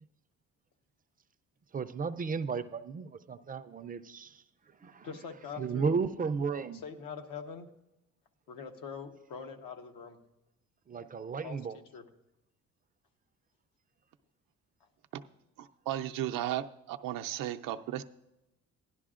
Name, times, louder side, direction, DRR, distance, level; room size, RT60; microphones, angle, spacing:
voice 1, 1.7-4.3 4.8-5.1 5.6-6.8 10.9-11.8, right 5 dB, 25° right, 10 dB, 0.4 m, -34 dB
voice 2, 5.0-6.0 6.7-7.7 8.5-10.2 11.4-12.1, left 6 dB, 80° left, 5 dB, 1.1 m, -43 dB
voice 3, 15.6-18.0, right 12 dB, 80° right, 7 dB, 0.6 m, -35 dB
16.0 x 11.5 x 2.5 m, 0.94 s
cardioid pair, 110°, 33 cm